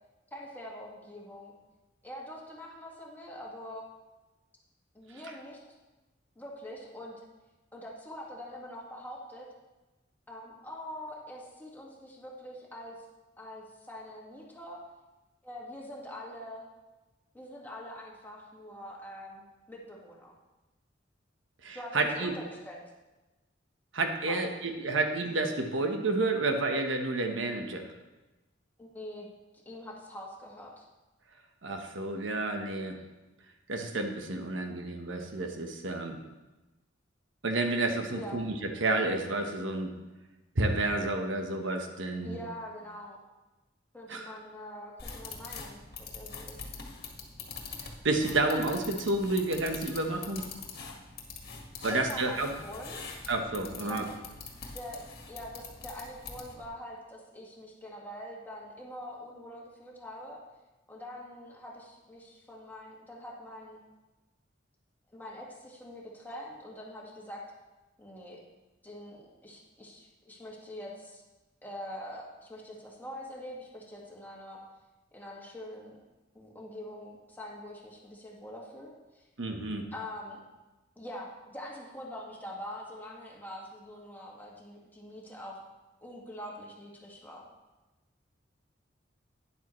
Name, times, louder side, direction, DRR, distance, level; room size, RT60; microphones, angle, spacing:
voice 1, 0.3-1.5 2.0-3.8 4.9-5.6 6.4-7.1 7.7-9.5 10.3-13.1 13.4-14.8 15.4-16.7 17.3-20.3 21.7-22.8 24.3-24.7 28.8-29.3 29.7-30.8 38.1-38.4 42.2-43.2 43.9-46.7 51.9-53.2 53.8-54.3 54.7-60.4 60.9-63.8 65.1-67.4 68.0-68.4 68.8-71.2 71.6-74.6 75.1-76.0 76.3-79.3 79.9-80.4 81.0-85.6 86.0-87.4, left 1 dB, 10° left, -3 dB, 1.9 m, -44 dB
voice 2, 21.6-22.3 23.9-27.9 31.6-33.0 33.7-36.2 37.4-38.5 38.8-39.9 40.6-42.4 44.1-44.3 48.0-50.4 51.8-52.5 53.3-54.0 79.4-79.8, right 2 dB, 90° right, 4 dB, 1.1 m, -30 dB
sound 1, 45.0-56.7, left 4 dB, 55° left, 1.7 m, -44 dB
12.0 x 10.0 x 3.2 m, 1.1 s
head